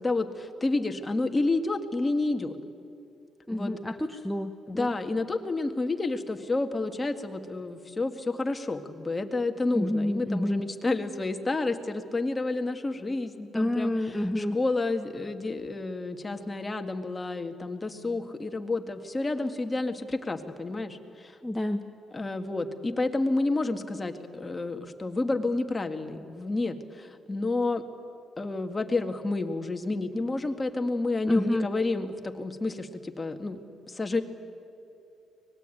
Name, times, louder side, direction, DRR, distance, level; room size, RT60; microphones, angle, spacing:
voice 1, 0.0-2.6 3.5-3.7 4.7-13.9 14.4-21.4 22.1-27.8 28.4-33.6 33.9-34.2, left 2 dB, 20° left, 6 dB, 1.9 m, -30 dB
voice 2, 3.5-4.9 9.7-10.6 13.5-14.6 21.4-21.8 31.3-31.7, left 1 dB, 5° left, 4 dB, 1.1 m, -28 dB
24.5 x 20.0 x 9.2 m, 2.7 s
cardioid pair, 90°, 0 cm